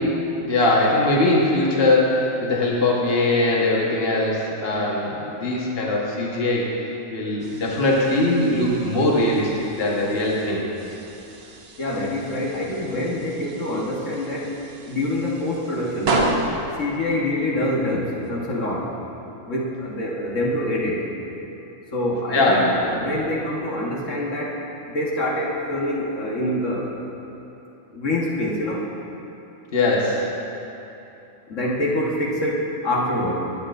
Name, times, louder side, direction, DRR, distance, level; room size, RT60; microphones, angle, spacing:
voice 1, 0.5-6.7 7.1-10.6 22.3-22.7 29.7-30.3, left 2 dB, 50° left, -3 dB, 1.4 m, -21 dB
sound 1, 7.4-18.3, right 2 dB, 55° right, 1.0 m, -33 dB
voice 2, 11.8-14.6 14.8-16.4 16.8-18.9 19.4-21.0 21.9-27.0 27.9-28.9 31.5-33.3, left 1 dB, 65° left, -4 dB, 1.6 m, -25 dB
19.5 x 8.2 x 2.5 m, 3.0 s
omnidirectional pair, 1.4 m